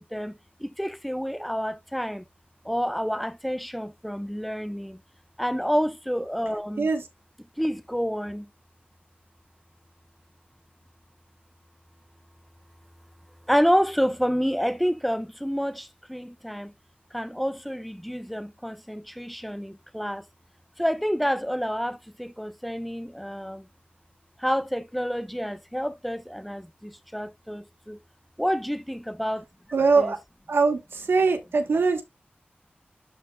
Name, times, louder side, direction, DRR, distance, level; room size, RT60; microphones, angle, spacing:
voice 1, 0.6-2.2 2.6-5.0 5.4-6.9 7.6-8.5 13.5-16.7 17.1-20.2 20.8-23.6 24.4-28.0 28.4-29.4 30.0-30.1, equal, ahead, 0.8 m, -28 dB
voice 2, 29.7-30.2 30.5-32.0, right 4 dB, 80° right, 1.1 m, -22 dB
12.0 x 4.4 x 2.3 m
cardioid pair, 40°, 4 cm